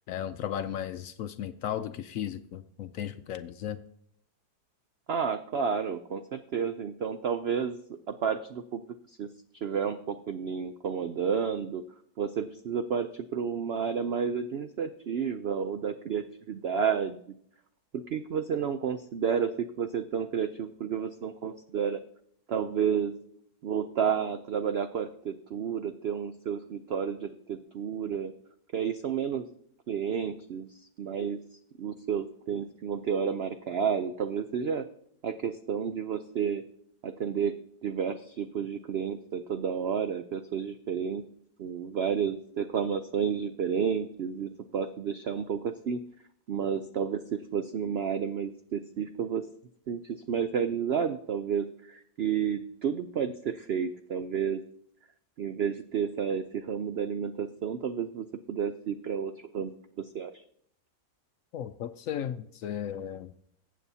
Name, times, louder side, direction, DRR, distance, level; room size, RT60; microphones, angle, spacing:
voice 1, 0.0-3.8 61.5-63.3, left 10 dB, 70° left, 11 dB, 0.8 m, -35 dB
voice 2, 5.1-7.8 8.1-8.8 9.2-9.3 9.6-11.8 12.2-17.2 17.9-22.0 22.5-23.1 23.6-28.3 28.7-29.5 29.9-30.7 31.0-31.4 31.8-34.8 35.2-36.6 37.0-37.5 37.8-41.2 41.6-46.0 46.5-49.4 49.9-54.6 55.4-60.4, right 7 dB, 80° right, 9 dB, 0.5 m, -31 dB
22.0 x 8.4 x 2.8 m, 0.68 s
omnidirectional pair, 1.7 m